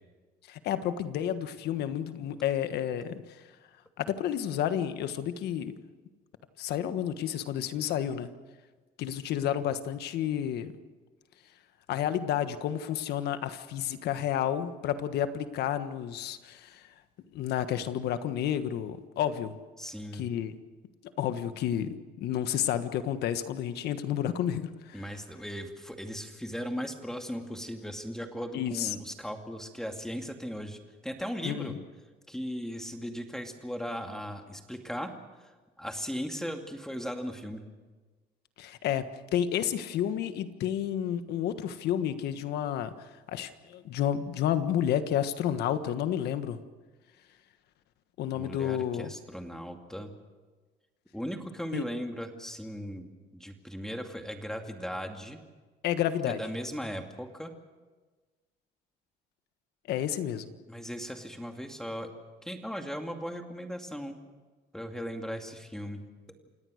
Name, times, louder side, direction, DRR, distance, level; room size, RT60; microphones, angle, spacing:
voice 1, 0.5-3.2 4.0-5.7 6.6-8.3 9.0-10.7 11.9-16.8 17.3-19.6 20.1-20.5 21.2-25.0 28.5-28.9 31.4-31.8 38.6-42.9 43.3-46.6 48.2-49.1 51.7-51.8 55.8-56.4 59.9-60.5, left 10 dB, 75° left, 11 dB, 1.4 m, -30 dB
voice 2, 19.8-20.3 24.9-31.8 32.3-35.1 35.4-35.5 35.8-37.6 48.3-50.1 51.1-53.1 53.3-55.4 56.2-57.5 60.7-62.1 62.4-64.2 64.7-66.0, equal, 5° left, 4 dB, 2.4 m, -37 dB
28.5 x 17.5 x 6.5 m, 1.3 s
cardioid pair, 110°, 17 cm